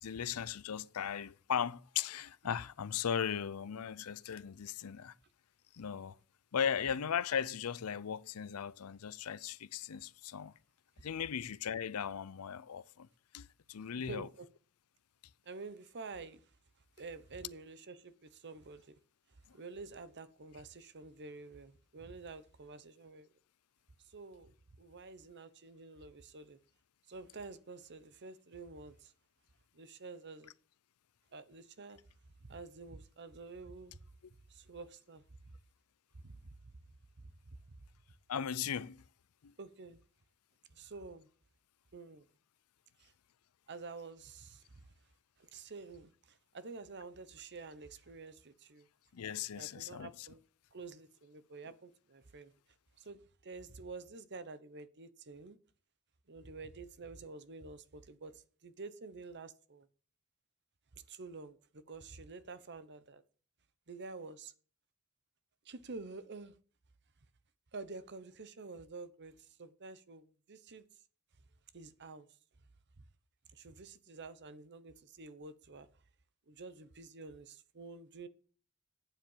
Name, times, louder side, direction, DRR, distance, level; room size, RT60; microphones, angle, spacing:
voice 1, 0.0-5.1 5.7-6.2 6.5-10.5 11.0-13.1 13.3-14.3 19.5-19.6 38.3-39.0 39.4-39.5 49.1-50.3, left 8 dB, 80° left, 0.5 m, -37 dB
voice 2, 14.0-14.5 15.5-16.4 17.0-18.9 19.5-23.3 24.1-24.5 24.8-26.6 27.1-29.1 29.7-30.5 31.3-32.0 32.4-34.0 34.5-35.2 36.2-36.7 37.2-37.6 39.6-40.0 40.7-41.3 41.9-42.3 43.0-43.1 43.7-44.8 45.4-48.9 49.6-50.4 50.7-52.5 53.0-55.6 56.3-59.9 61.1-63.2 63.9-64.5 65.6-66.5 67.7-70.8 71.7-72.3 73.5-75.9 76.5-78.3, right 3 dB, 50° right, 0.9 m, -49 dB
9.0 x 7.5 x 7.2 m
head